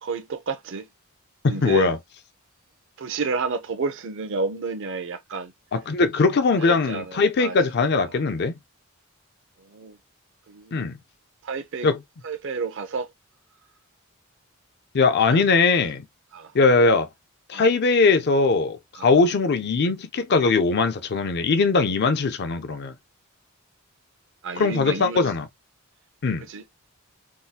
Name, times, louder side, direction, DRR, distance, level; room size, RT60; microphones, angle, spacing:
voice 1, 0.0-0.9 1.5-1.9 3.0-5.5 6.6-7.6 9.7-10.0 10.5-10.9 11.4-11.9 12.2-13.1 15.3-15.4 16.3-16.5 17.5-17.7 19.0-19.1 24.4-25.2 26.5-26.6, right 4 dB, 60° right, 0.6 m, -30 dB
voice 2, 1.4-2.0 5.7-8.6 10.7-11.0 11.8-12.0 14.9-16.1 16.5-17.1 17.5-22.9 24.6-25.5 26.2-26.5, left 4 dB, 50° left, 0.5 m, -20 dB
3.7 x 2.3 x 2.7 m
head